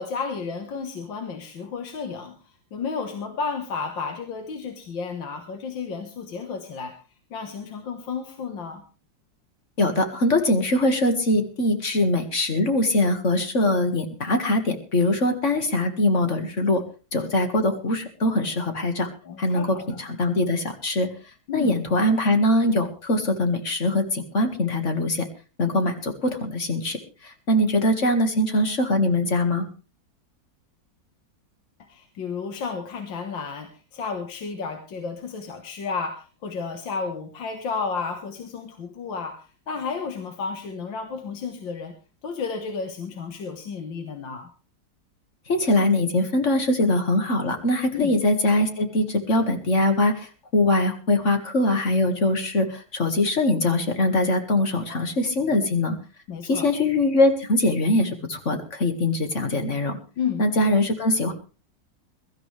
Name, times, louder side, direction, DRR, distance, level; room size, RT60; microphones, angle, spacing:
voice 1, 0.0-2.3 2.7-6.9 7.3-8.8 19.2-20.0 21.5-21.7 31.9-39.4 39.7-41.9 42.2-44.5 47.9-48.2 54.9-55.0 56.3-56.7 60.2-60.5, left 5 dB, 75° left, 5 dB, 2.1 m, -32 dB
voice 2, 9.8-16.8 17.1-19.1 19.4-21.1 21.5-25.3 25.6-27.0 27.5-29.6 45.5-56.0 56.5-60.0 60.4-61.3, left 1 dB, 40° left, 6 dB, 2.1 m, -22 dB
22.0 x 13.0 x 3.3 m, 0.34 s
omnidirectional pair, 2.1 m